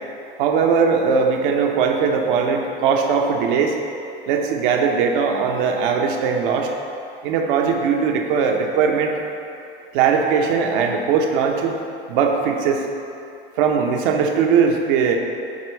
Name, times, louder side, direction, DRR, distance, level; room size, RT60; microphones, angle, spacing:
voice 1, 0.4-3.7 4.3-6.7 7.2-9.3 9.9-11.8 12.1-12.9 13.6-15.2, right 6 dB, 65° right, 3 dB, 0.9 m, -19 dB
7.9 x 3.0 x 5.7 m, 2.6 s
hypercardioid pair, 95°, 29 cm